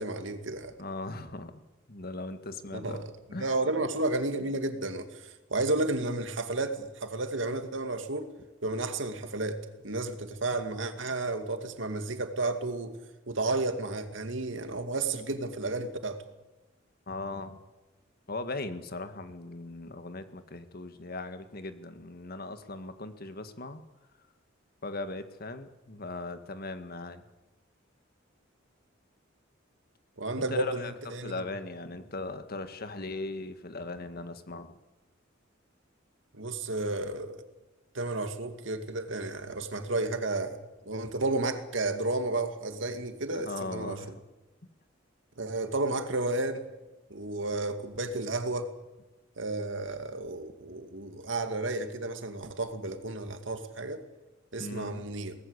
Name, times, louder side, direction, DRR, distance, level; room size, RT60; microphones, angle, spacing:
voice 1, 0.0-0.8 2.7-3.0 3.3-8.3 8.6-13.0 13.3-16.2 30.2-31.4 36.3-37.4 37.9-40.6 40.9-44.2 45.4-46.6 47.1-48.7 49.4-54.0 54.5-55.3, right 2 dB, 70° right, 2.4 m, -32 dB
voice 2, 0.8-1.5 1.9-3.0 3.3-3.6 17.1-17.6 18.3-23.8 24.8-27.2 30.4-34.7 43.3-44.1 54.6-55.0, left 2 dB, 55° left, 1.8 m, -38 dB
23.5 x 19.0 x 8.2 m
head